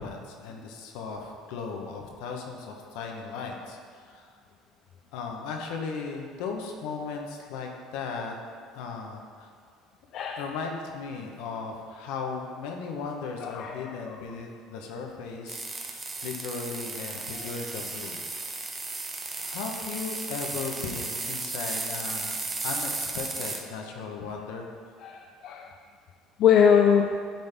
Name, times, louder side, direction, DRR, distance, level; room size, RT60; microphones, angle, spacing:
voice 1, 0.0-4.3 5.1-8.4 8.7-9.5 10.4-18.2 19.4-24.7, left 5 dB, 80° left, 2 dB, 1.0 m, -37 dB
voice 2, 13.4-14.2 25.0-25.7 26.4-27.1, left 7 dB, 60° left, 2 dB, 0.4 m, -22 dB
sound 1, 15.5-23.6, right 3 dB, 25° right, 0.8 m, -34 dB
10.0 x 4.2 x 3.5 m, 2.1 s
supercardioid pair, 90°, 0 cm